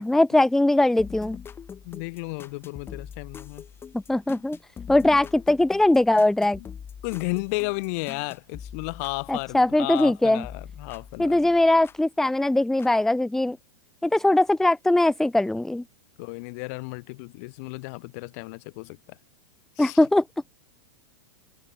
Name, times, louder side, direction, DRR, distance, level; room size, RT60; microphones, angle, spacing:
voice 1, 0.0-1.4 4.1-4.6 4.9-6.6 9.3-10.4 11.2-13.6 14.0-15.8 19.8-20.2, left 1 dB, 5° left, 0.8 m, -21 dB
sound 1, 1.0-10.1 10.4-12.0 12.8-12.9, left 7 dB, 25° left, 7.5 m, -43 dB
voice 2, 1.8-3.6 6.6-6.7 7.0-11.3 16.2-19.2 19.8-20.0, left 29 dB, 55° left, 1.2 m, -33 dB
hypercardioid pair, 100°, 10 cm